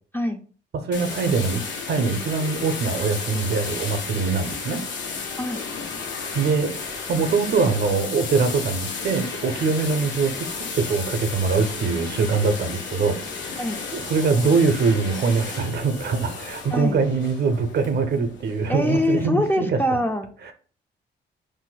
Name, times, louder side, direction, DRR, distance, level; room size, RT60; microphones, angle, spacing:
voice 1, 0.7-4.8 6.3-13.2 13.5-13.6 13.9-19.8 20.4-20.5, right 4 dB, 55° right, 8 dB, 0.6 m, -23 dB
sound 1, 0.9-19.2, left 5 dB, 70° left, 0.8 m, -33 dB
voice 2, 16.7-17.0 18.7-20.3, left 1 dB, 10° left, 5 dB, 0.3 m, -24 dB
2.6 x 2.1 x 3.9 m, 0.41 s
cardioid pair, 90°, 20 cm